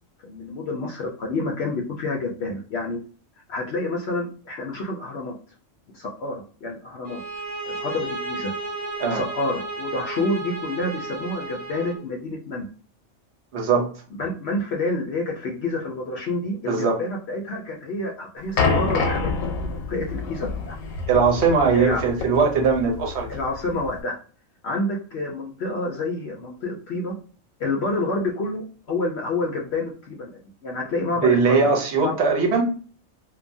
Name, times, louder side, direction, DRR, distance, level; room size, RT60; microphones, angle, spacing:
voice 1, 0.2-3.0 3.5-5.4 5.9-7.2 7.7-8.5 9.1-12.7 14.2-20.8 21.7-22.0 23.3-24.2 24.6-27.1 27.6-30.3 30.6-31.6 32.0-32.1, left 2 dB, 65° left, 0 dB, 0.7 m, -28 dB
sound 1, 7.0-12.0, right 3 dB, 35° right, 0.6 m, -33 dB
voice 2, 13.5-13.9 16.7-17.0 21.1-23.3 31.2-32.7, right 4 dB, 60° right, 1 dB, 1.0 m, -20 dB
sound 2, 18.6-24.0, left 4 dB, 90° left, 1.0 m, -27 dB
2.7 x 2.2 x 2.6 m, 0.39 s
omnidirectional pair, 1.3 m